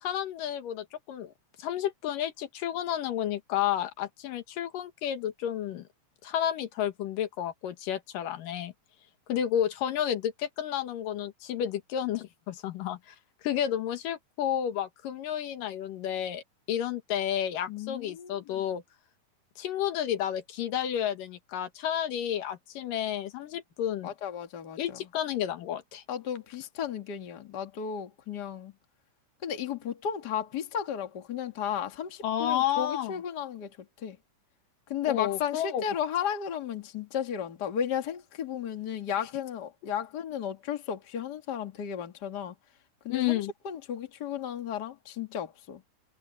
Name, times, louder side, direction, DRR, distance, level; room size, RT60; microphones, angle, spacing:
voice 1, 0.0-1.3 1.6-5.9 6.2-8.7 9.3-13.2 13.4-16.4 16.7-18.8 19.6-24.1 24.8-26.0 32.2-33.1 35.1-35.8 43.1-43.5, left 10 dB, 85° left, 3.1 m, -31 dB
voice 2, 17.7-18.6 24.0-25.1 26.1-28.7 29.4-34.2 34.9-42.6 43.0-45.8, left 8 dB, 35° left, 2.0 m, -34 dB
omnidirectional pair, 3.7 m